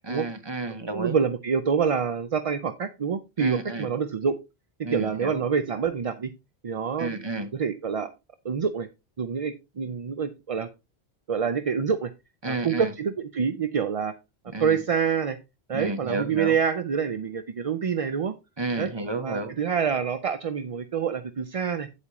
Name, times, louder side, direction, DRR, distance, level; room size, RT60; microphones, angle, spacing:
voice 1, 0.1-1.2 3.4-3.9 4.8-5.4 7.0-7.5 12.4-12.9 14.5-14.8 15.7-16.5 18.6-19.5, right 2 dB, 25° right, 8 dB, 1.1 m, -31 dB
voice 2, 0.9-4.3 4.8-6.3 6.6-7.2 7.5-8.1 8.4-8.9 9.2-10.7 11.3-12.1 12.5-14.1 14.6-15.4 15.7-18.3 18.8-18.9 19.2-21.9, right 6 dB, 45° right, 10 dB, 0.5 m, -26 dB
8.7 x 8.3 x 3.0 m, 0.25 s
omnidirectional pair, 1.0 m